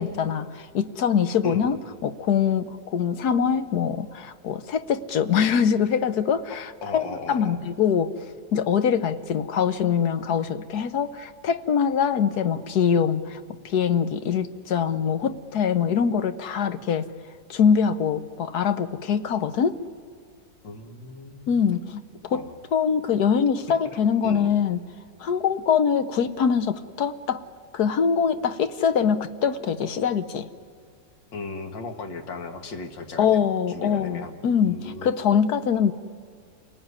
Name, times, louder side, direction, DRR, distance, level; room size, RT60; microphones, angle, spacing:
voice 1, 0.0-8.1 8.5-13.4 13.6-17.1 17.5-19.8 21.5-22.4 22.7-24.8 25.2-27.4 27.7-30.5 33.2-35.9, left 7 dB, 65° left, 11 dB, 1.4 m, -23 dB
voice 2, 6.8-7.6 20.6-21.7 22.3-22.5 24.2-24.5 31.3-35.1, left 3 dB, 85° left, 5 dB, 2.5 m, -37 dB
28.5 x 19.0 x 9.7 m, 2.2 s
omnidirectional pair, 1.9 m